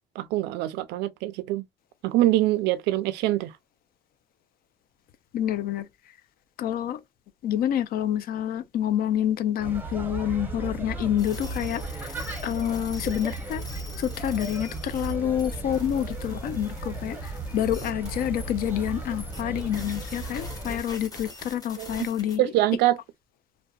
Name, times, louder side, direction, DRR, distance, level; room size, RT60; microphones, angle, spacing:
voice 1, 0.2-1.6 2.0-3.5 21.8-22.1 22.4-23.0, right 15 dB, 85° right, 0.4 m, -24 dB
voice 2, 5.3-5.9 6.6-7.0 7.4-13.6 14.0-22.4, left 10 dB, 60° left, 0.4 m, -28 dB
sound 1, 9.6-20.8, right 2 dB, 10° right, 0.7 m, -35 dB
sound 2, 11.2-22.4, left 2 dB, 20° left, 0.9 m, -45 dB
2.7 x 2.1 x 2.2 m
cardioid pair, 110°, 17 cm